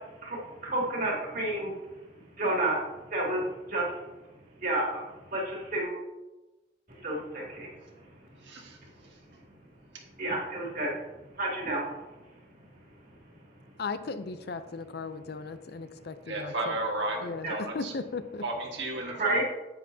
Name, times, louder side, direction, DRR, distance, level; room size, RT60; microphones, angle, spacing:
voice 1, 0.7-1.7 2.4-2.8 3.1-3.4 3.7-3.8 4.6-4.8 5.3-5.4 5.7-5.9 7.0-7.4 10.2-10.9 11.4-11.8 17.4-17.5 19.0-19.4, right 2 dB, 50° right, -3 dB, 2.4 m, -29 dB
voice 2, 8.4-8.8 16.3-17.9 18.4-19.4, right 2 dB, 80° right, 1 dB, 1.6 m, -33 dB
voice 3, 13.8-16.8 17.2-18.4, left 4 dB, 60° left, 11 dB, 0.5 m, -37 dB
9.8 x 8.5 x 2.7 m, 1.1 s
head